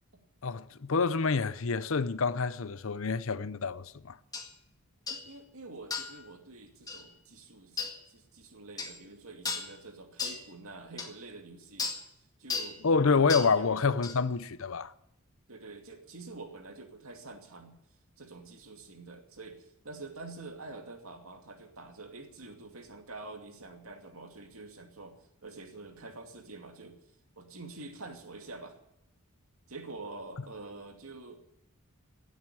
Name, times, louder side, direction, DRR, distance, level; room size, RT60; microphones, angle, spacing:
voice 1, 0.4-4.2 12.8-14.9, left 4 dB, 60° left, 0.7 m, -27 dB
sound 1, 4.3-4.5 5.1-5.3 5.9-6.2 6.9-7.0 7.8-8.0 8.8-9.0 9.4-9.7 10.2-10.4 11.0-11.1 11.8-12.0 12.5-12.7 13.3-13.5 14.0-14.2, left 5 dB, 15° left, 1.8 m, -35 dB
voice 2, 5.1-11.9 12.4-12.8 13.2-13.3 13.5-13.7 15.5-17.7 18.2-25.2 25.4-27.0 27.4-28.7 29.7-31.6, right 3 dB, 70° right, 2.5 m, -47 dB
17.0 x 8.1 x 9.8 m
head